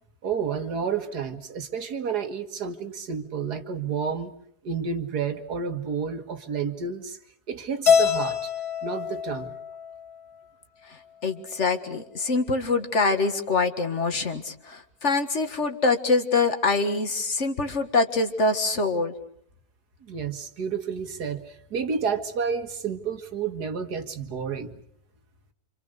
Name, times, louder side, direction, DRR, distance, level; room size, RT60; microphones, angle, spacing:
voice 1, 0.2-4.3 4.6-7.2 7.5-8.5 8.8-9.6 20.0-24.8, right 6 dB, 90° right, 8 dB, 2.2 m, -30 dB
Keyboard (musical), 7.9-10.2, left 7 dB, 80° left, 4.7 m, -24 dB
voice 2, 10.9-19.1, left 3 dB, 50° left, 7 dB, 2.0 m, -25 dB
27.5 x 26.5 x 6.6 m, 0.67 s
omnidirectional pair, 1.7 m